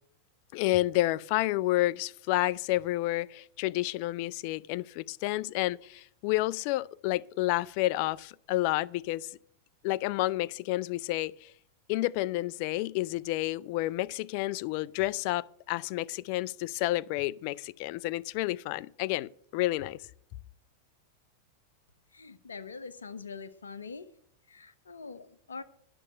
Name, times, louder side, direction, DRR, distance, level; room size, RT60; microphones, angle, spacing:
voice 1, 0.5-9.3 9.8-11.5 11.9-20.0, left 17 dB, 55° left, 0.4 m, -30 dB
voice 2, 22.1-24.1 24.5-25.6, left 4 dB, 90° left, 0.9 m, -43 dB
9.9 x 6.6 x 8.4 m
hypercardioid pair, 105°, 0 cm